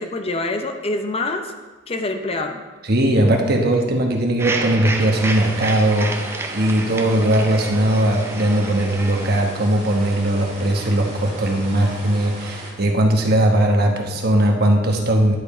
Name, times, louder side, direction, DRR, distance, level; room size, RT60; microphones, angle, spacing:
voice 1, 0.0-1.5 1.9-2.6, left 2 dB, 30° left, 6 dB, 0.7 m, -25 dB
voice 2, 2.9-15.4, right 1 dB, 55° right, 2 dB, 1.2 m, -19 dB
sound 1, 4.4-9.4, right 2 dB, 15° right, 0.6 m, -30 dB
sound 2, 5.1-12.7, right 2 dB, 35° right, 2.5 m, -37 dB
10.5 x 5.2 x 4.3 m, 1.3 s
head